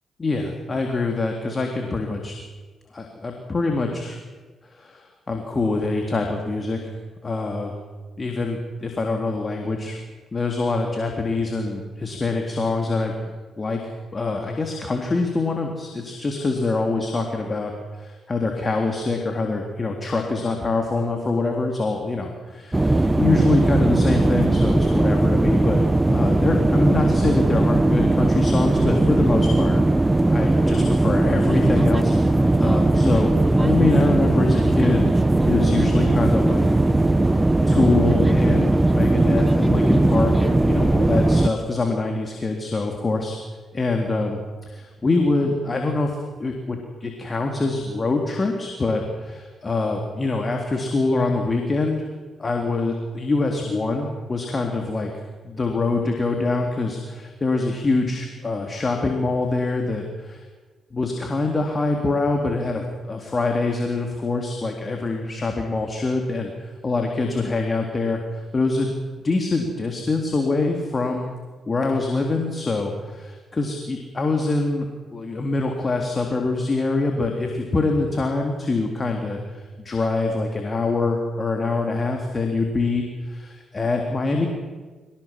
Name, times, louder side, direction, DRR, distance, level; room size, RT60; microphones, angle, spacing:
voice 1, 0.2-2.4 2.9-4.2 4.6-7.0 7.2-7.7 8.2-10.0 10.3-13.1 13.6-13.8 14.1-25.8 26.1-29.8 30.3-35.1 35.5-36.7 37.3-43.4 43.7-44.4 44.7-52.1 52.4-55.1 55.4-60.4 60.9-68.9 69.2-71.3 71.7-84.5, left 3 dB, 35° left, 3 dB, 3.6 m, -24 dB
sound 1, 22.7-41.5, right 2 dB, 20° right, 1.2 m, -18 dB
23.5 x 18.5 x 7.7 m, 1.3 s
hypercardioid pair, 45°, 0 cm